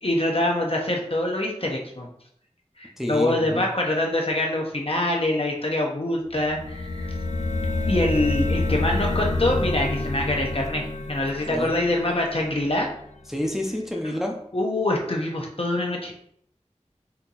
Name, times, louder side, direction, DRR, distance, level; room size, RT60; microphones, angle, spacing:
voice 1, 0.0-2.1 2.8-7.1 7.9-12.9 14.5-16.1, left 1 dB, 50° left, 0 dB, 1.0 m, -25 dB
voice 2, 3.0-3.6 11.5-11.7 13.3-14.4, equal, 5° right, 0 dB, 0.7 m, -28 dB
sound 1, 6.4-13.1, left 2 dB, 75° left, 0.5 m, -28 dB
4.5 x 2.8 x 3.9 m, 0.68 s
wide cardioid pair, 45°, 12 cm